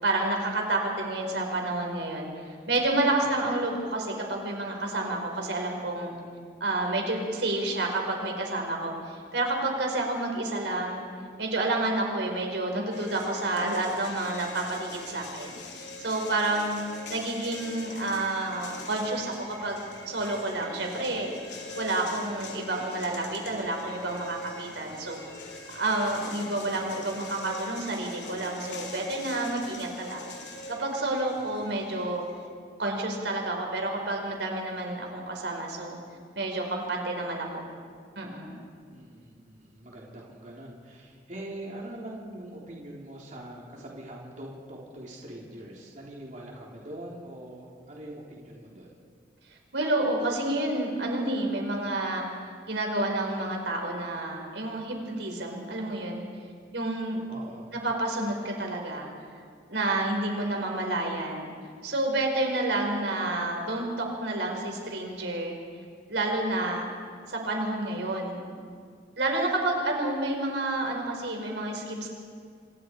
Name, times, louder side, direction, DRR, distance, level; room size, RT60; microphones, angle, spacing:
voice 1, 0.0-2.3 2.7-6.1 6.6-11.0 11.4-16.8 17.1-21.3 21.8-25.2 25.7-30.3 30.7-32.2 32.8-36.0 36.3-37.6 38.1-38.6 49.7-52.3 52.7-56.2 56.7-57.2 57.8-59.1 59.7-61.5 61.8-65.5 66.1-66.9 67.3-68.4 69.2-72.1, right 2 dB, 80° right, 1 dB, 4.9 m, -29 dB
sound 1, 12.9-32.5, left 1 dB, 75° left, 3.5 m, -43 dB
voice 2, 38.9-48.9 57.3-57.7, right 1 dB, 40° right, -3 dB, 3.7 m, -43 dB
28.0 x 26.5 x 4.8 m, 2.1 s
head